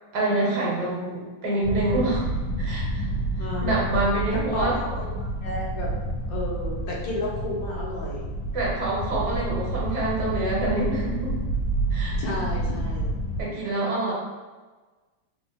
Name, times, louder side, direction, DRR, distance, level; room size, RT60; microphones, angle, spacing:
voice 1, 0.1-2.3 2.6-3.1 3.6-4.8 8.5-11.3 11.9-12.2 13.4-14.1, right 2 dB, 65° right, -5 dB, 1.4 m, -26 dB
sound 1, 1.6-13.4, right 1 dB, 75° left, 1.2 m, -29 dB
voice 2, 3.4-3.9 4.3-5.9 6.3-8.3 12.2-13.2, left 2 dB, 90° left, -3 dB, 1.6 m, -32 dB
3.9 x 2.0 x 3.4 m, 1.3 s
omnidirectional pair, 2.0 m